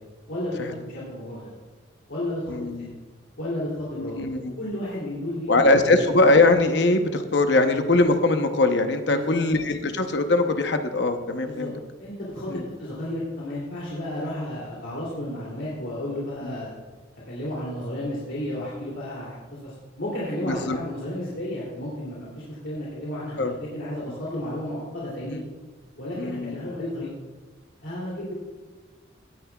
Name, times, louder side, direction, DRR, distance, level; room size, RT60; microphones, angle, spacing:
voice 1, 0.3-1.5 2.1-2.6 3.4-4.3 4.6-6.0 9.1-9.4 11.4-11.7 12.0-16.7 17.3-25.4 26.0-27.1 27.8-28.3, left 1 dB, 75° left, -7 dB, 2.8 m, -32 dB
voice 2, 2.5-2.9 4.0-4.5 5.5-11.7 12.5-12.6 16.4-16.6 20.5-20.8 23.4-23.5 25.2-25.4 26.1-26.6, left 2 dB, 60° left, 7 dB, 0.8 m, -21 dB
17.5 x 9.5 x 2.3 m, 1.4 s
head